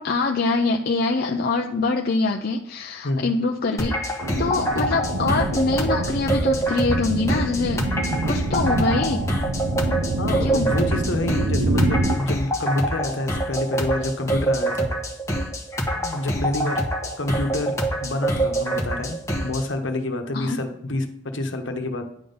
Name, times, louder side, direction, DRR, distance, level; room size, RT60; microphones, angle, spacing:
voice 1, 0.0-4.0 4.4-7.8 8.3-9.3 10.4-10.7 20.3-20.6, left 3 dB, 50° left, 2 dB, 0.5 m, -24 dB
sound 1, 3.8-19.7, right 1 dB, 15° left, 1.2 m, -26 dB
sound 2, 4.2-12.2, right 2 dB, 90° right, 0.7 m, -26 dB
voice 2, 10.2-14.9 15.9-16.8 17.2-17.7 18.0-19.2 19.4-22.1, left 2 dB, 70° left, 5 dB, 1.1 m, -27 dB
9.8 x 3.8 x 5.4 m, 0.71 s
head